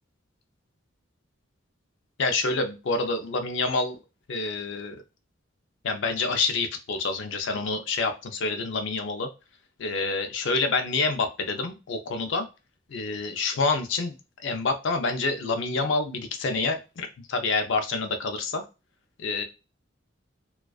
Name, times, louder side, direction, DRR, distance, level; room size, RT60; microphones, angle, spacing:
voice 1, 2.2-4.0 4.3-5.0 5.8-9.3 9.8-12.5 12.9-18.6 19.2-19.4, left 3 dB, 60° left, 6 dB, 0.4 m, -27 dB
2.3 x 2.3 x 2.3 m, 0.28 s
head